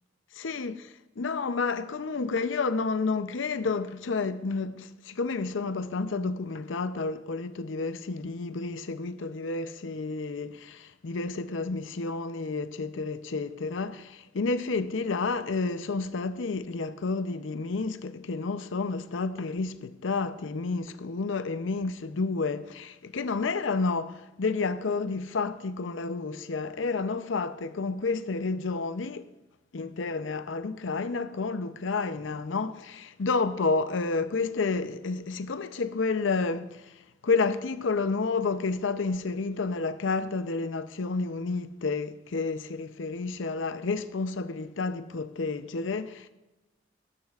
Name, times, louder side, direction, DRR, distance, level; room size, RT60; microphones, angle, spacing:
voice 1, 0.3-0.7 1.2-29.3 29.7-36.9 37.2-46.3, left 4 dB, 85° left, 0.6 m, -30 dB
13.5 x 12.5 x 2.4 m
head